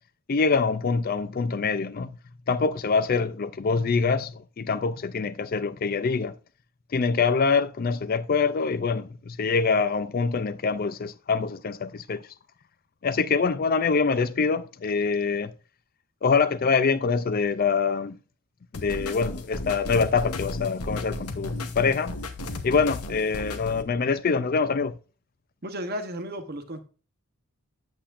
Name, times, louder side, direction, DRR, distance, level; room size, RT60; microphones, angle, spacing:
voice 1, 0.3-2.1 2.5-6.3 6.9-12.2 13.0-15.5 16.2-18.2 18.7-22.2 22.6-24.9, left 5 dB, 40° left, 0.4 m, -25 dB
sound 1, 18.7-23.8, left 2 dB, 80° left, 1.0 m, -35 dB
voice 2, 25.6-26.8, equal, 45° right, 0.9 m, -33 dB
8.4 x 7.9 x 2.5 m
head